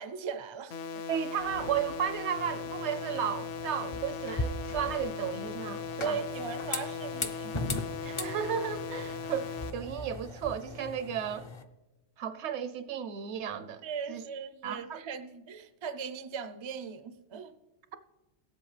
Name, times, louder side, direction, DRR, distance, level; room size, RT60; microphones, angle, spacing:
voice 1, 0.0-1.0 6.0-7.5 13.8-17.5, right 6 dB, 50° right, 0.3 m, -38 dB
sound 1, 0.7-9.7, left 5 dB, 65° left, 0.8 m, -39 dB
voice 2, 1.1-6.2 8.0-11.5 12.2-14.2 14.6-15.0, right 8 dB, 70° right, 0.8 m, -34 dB
sound 2, 1.4-3.4, right 1 dB, 85° left, 2.5 m, -53 dB
sound 3, 2.4-11.6, left 2 dB, 40° left, 0.4 m, -39 dB
17.5 x 7.8 x 3.2 m
omnidirectional pair, 1.2 m